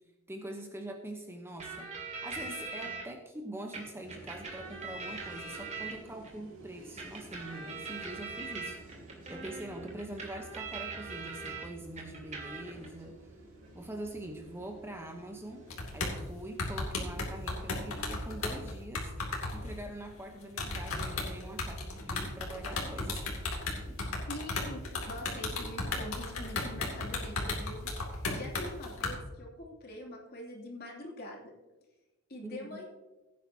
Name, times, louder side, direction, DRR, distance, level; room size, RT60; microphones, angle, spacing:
voice 1, 0.3-1.9 2.2-8.8 9.3-13.4 13.7-15.6 15.9-23.2 23.9-24.0 32.4-32.9, right 1 dB, 10° right, 4 dB, 0.9 m, -44 dB
sound 1, 1.6-3.0 3.7-6.3 7.0-11.7 12.0-12.9, right 4 dB, 35° right, 2.2 m, -42 dB
sound 2, 4.0-18.1, right 1 dB, 60° right, 3.5 m, -53 dB
sound 3, 15.7-16.2 16.6-19.8 20.5-29.1, left 3 dB, 70° left, 2.5 m, -34 dB
voice 2, 24.3-31.5 32.3-32.9, left 1 dB, 45° left, -2 dB, 2.7 m, -44 dB
16.0 x 9.5 x 2.8 m, 1.1 s
head